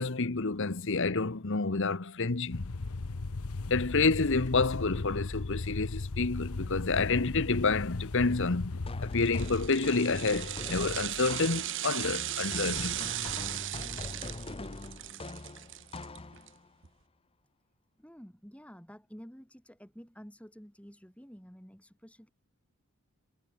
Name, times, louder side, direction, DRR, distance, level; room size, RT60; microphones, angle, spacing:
voice 1, 0.0-2.7 3.7-13.0, left 3 dB, 55° left, 1.0 m, -29 dB
sound 1, 2.5-9.7, left 3 dB, 80° left, 0.9 m, -36 dB
sound 2, 8.9-16.7, left 2 dB, 25° left, 0.9 m, -42 dB
sound 3, 9.2-16.5 16.8-16.9, right 14 dB, 55° right, 0.8 m, -37 dB
voice 2, 18.0-22.3, equal, 5° left, 7.2 m, -50 dB
head